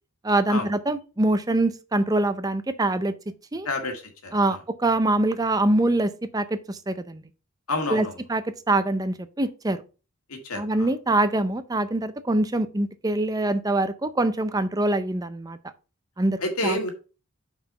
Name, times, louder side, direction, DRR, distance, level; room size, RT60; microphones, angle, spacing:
voice 1, 0.2-3.1 3.5-3.7 4.3-7.2 7.9-9.8 10.6-15.6 16.2-16.8, right 2 dB, 15° right, 0.5 m, -24 dB
voice 2, 3.6-4.6 7.7-8.2 10.3-10.9 16.4-16.9, left 2 dB, 85° left, 2.0 m, -29 dB
5.7 x 4.8 x 5.4 m
head